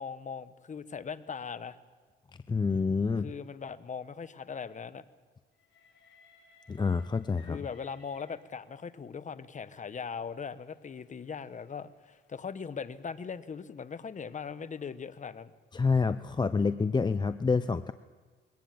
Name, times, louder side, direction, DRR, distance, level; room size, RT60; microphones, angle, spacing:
voice 1, 0.0-1.8 3.2-5.0 7.5-15.5, left 6 dB, 40° left, 13 dB, 1.1 m, -40 dB
voice 2, 2.5-3.3 6.7-7.6 15.7-17.9, left 4 dB, 20° left, 12 dB, 0.6 m, -27 dB
Train, 5.5-8.9 9.8-15.0, left 4 dB, 70° left, 7.1 m, -65 dB
22.0 x 18.0 x 7.8 m, 1.4 s
cardioid pair, 90°, 20 cm